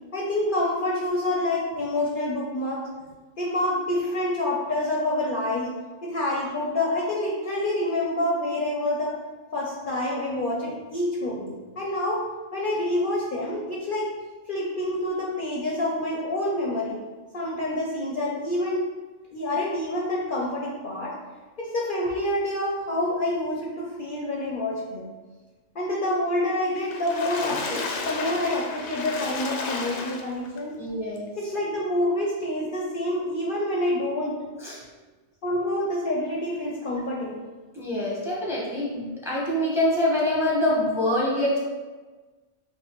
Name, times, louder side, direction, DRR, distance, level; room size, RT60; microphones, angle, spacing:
voice 1, 0.1-2.9 3.4-5.7 6.0-9.2 9.5-14.1 14.5-17.0 17.3-18.9 19.3-21.1 21.6-25.0 25.7-30.7 31.4-34.4 35.4-37.4, left 1 dB, 55° left, -3 dB, 0.7 m, -27 dB
Water / Splash splatter, 26.8-30.6 31.2-31.3 31.6-31.7, left 4 dB, 85° left, 0.9 m, -33 dB
voice 2, 30.8-31.3 34.6-34.8 37.7-41.6, left 1 dB, ahead, -5 dB, 0.9 m, -25 dB
5.7 x 2.5 x 3.0 m, 1.3 s
omnidirectional pair, 1.2 m